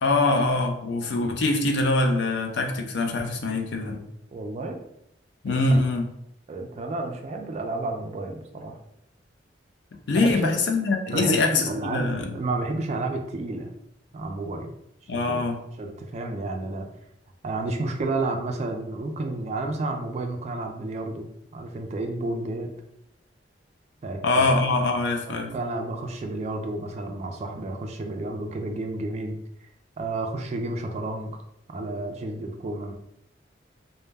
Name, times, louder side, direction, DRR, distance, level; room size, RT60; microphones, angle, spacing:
voice 1, 0.0-4.0 5.4-6.1 10.1-12.3 15.1-15.6 24.2-25.5, left 2 dB, 65° left, 4 dB, 0.4 m, -23 dB
voice 2, 4.3-4.8 5.4-5.6 6.5-8.8 10.2-10.6 11.1-13.7 14.1-14.7 15.1-15.5 15.8-16.9 17.4-21.3 21.5-22.7 24.0-24.5 25.3-29.4 30.0-31.3 31.7-32.9, right 2 dB, 35° right, 3 dB, 0.3 m, -31 dB
2.1 x 2.0 x 3.2 m, 0.77 s
head